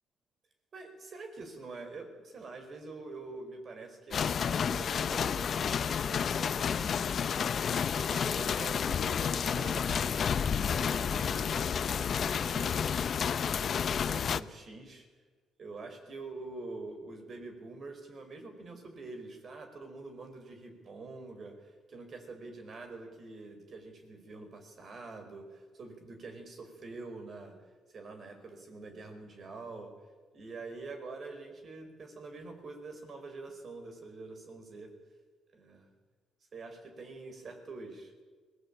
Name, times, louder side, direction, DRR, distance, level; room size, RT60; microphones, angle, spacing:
voice 1, 0.7-10.2 10.7-11.7 12.1-13.0 13.6-15.1 15.6-27.5 27.9-29.9 30.3-34.9 35.5-35.9 36.5-38.1, right 3 dB, 50° right, 6 dB, 5.0 m, -46 dB
sound 1, 4.1-14.4, left 7 dB, 55° left, 0.7 m, -30 dB
22.5 x 17.5 x 8.9 m, 1.5 s
cardioid pair, 90°, 0 cm